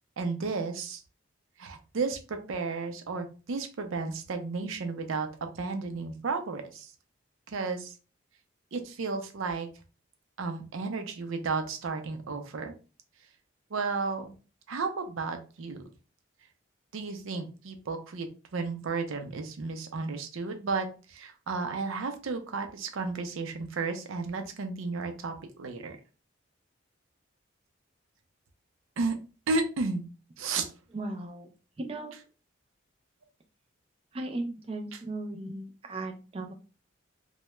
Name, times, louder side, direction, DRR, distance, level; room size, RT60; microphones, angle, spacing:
voice 1, 0.2-1.0 1.6-6.9 7.5-7.9 8.7-9.7 10.4-12.7 13.7-14.3 14.7-15.8 16.9-18.3 18.5-26.0 29.0-29.2 29.5-30.1 30.4-30.7, right 4 dB, 85° right, 6 dB, 0.5 m, -33 dB
voice 2, 30.9-31.5 31.8-32.1 34.1-36.5, right 2 dB, 30° right, 4 dB, 0.3 m, -36 dB
2.2 x 2.0 x 3.0 m, 0.34 s
head